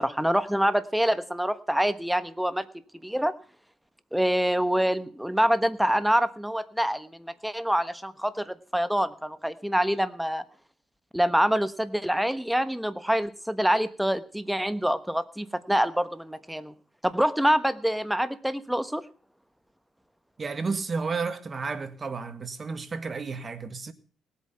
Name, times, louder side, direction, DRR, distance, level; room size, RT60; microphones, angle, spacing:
voice 1, 0.0-2.6 3.0-3.3 4.1-10.4 11.1-16.7 17.0-19.0, equal, 5° right, 1.2 m, -26 dB
voice 2, 20.4-23.9, right 4 dB, 35° right, 1.8 m, -32 dB
18.5 x 8.6 x 5.7 m
cardioid pair, 90°, 0 cm